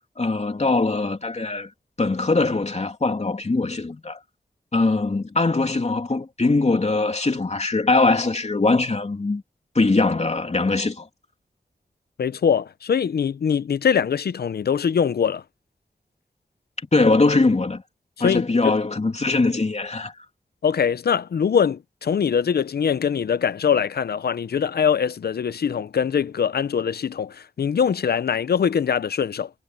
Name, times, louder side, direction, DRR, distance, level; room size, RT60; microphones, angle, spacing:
voice 1, 0.2-1.7 2.0-4.2 4.7-9.4 9.7-11.1 16.9-17.8 18.2-20.1, left 3 dB, 45° left, 3.0 m, -21 dB
voice 2, 12.2-15.4 18.2-18.7 20.6-29.5, left 7 dB, 90° left, 0.6 m, -22 dB
wide cardioid pair, 65°, 16 cm